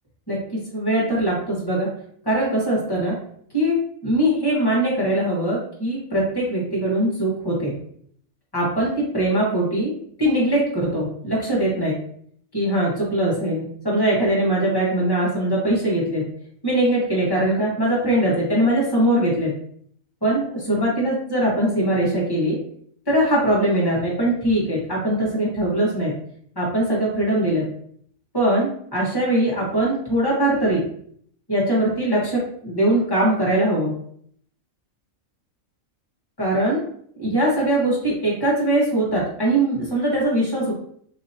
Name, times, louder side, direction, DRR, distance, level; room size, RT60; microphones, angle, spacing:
voice 1, 0.3-1.9 2.2-3.1 3.5-7.7 8.5-9.9 10.2-11.9 12.5-16.2 16.6-19.5 20.2-22.6 23.1-26.1 26.5-27.7 28.3-30.8 31.5-33.9 36.4-36.8 37.2-40.7, right 1 dB, 15° left, -5 dB, 1.4 m, -21 dB
4.1 x 2.9 x 2.7 m, 0.64 s
omnidirectional pair, 1.5 m